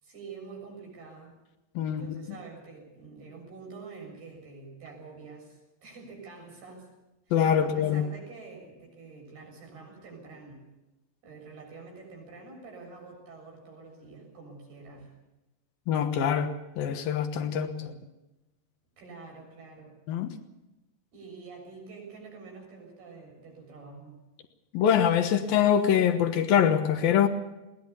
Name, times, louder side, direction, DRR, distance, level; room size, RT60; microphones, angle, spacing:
voice 1, 0.0-1.4 1.9-6.9 7.6-10.7 11.2-15.1 17.5-18.0 19.0-20.0 21.1-24.2, right 4 dB, 55° right, 1 dB, 8.6 m, -47 dB
voice 2, 1.7-2.4 7.3-8.0 15.9-17.9 20.1-20.4 24.7-27.3, left 9 dB, 70° left, 8 dB, 2.5 m, -24 dB
22.0 x 18.5 x 6.9 m, 1.0 s
omnidirectional pair, 5.4 m